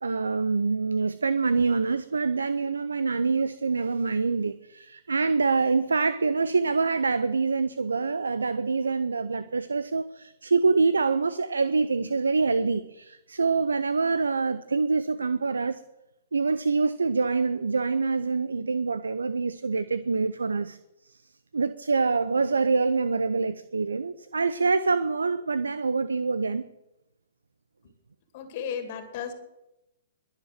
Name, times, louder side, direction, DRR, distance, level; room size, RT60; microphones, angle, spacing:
voice 1, 0.0-15.8 16.3-20.8 21.1-21.2 21.5-26.6, right 4 dB, 80° right, 15 dB, 0.5 m, -25 dB
voice 2, 28.3-29.3, left 7 dB, 45° left, 6 dB, 2.3 m, -34 dB
22.0 x 7.4 x 6.5 m, 0.93 s
figure-of-eight pair, 115°, 0 cm